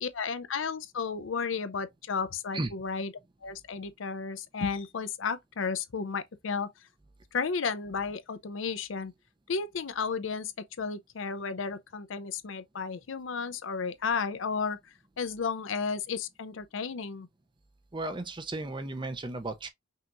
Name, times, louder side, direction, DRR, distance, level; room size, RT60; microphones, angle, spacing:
voice 1, 0.0-3.1 3.4-6.7 7.3-9.1 9.5-14.8 15.2-17.3, left 5 dB, 70° left, 0.6 m, -33 dB
voice 2, 17.9-19.7, right 2 dB, 25° right, 0.6 m, -34 dB
5.5 x 2.9 x 2.5 m
head